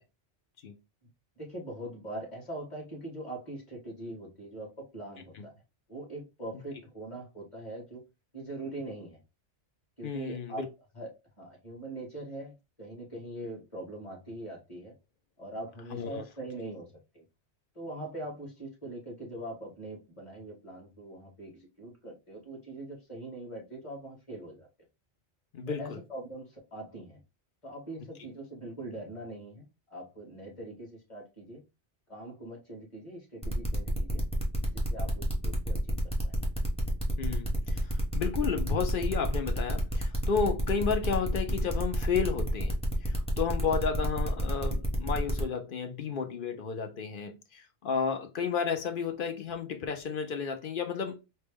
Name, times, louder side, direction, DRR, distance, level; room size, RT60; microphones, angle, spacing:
voice 1, 1.4-5.5 5.9-8.0 8.3-9.2 10.0-10.6 10.9-11.1 11.4-14.9 15.4-17.2 17.7-24.7 25.7-27.2 27.6-31.6 32.1-34.2 34.7-35.9 36.2-36.4 43.7-43.8, right 1 dB, 25° left, 1.9 m, -42 dB
voice 2, 10.0-10.7 15.9-16.2 25.5-25.8 37.2-51.3, left 6 dB, 55° left, 0.7 m, -32 dB
sound 1, 33.4-45.4, right 1 dB, 5° left, 0.8 m, -33 dB
4.5 x 2.2 x 3.4 m
omnidirectional pair, 1.2 m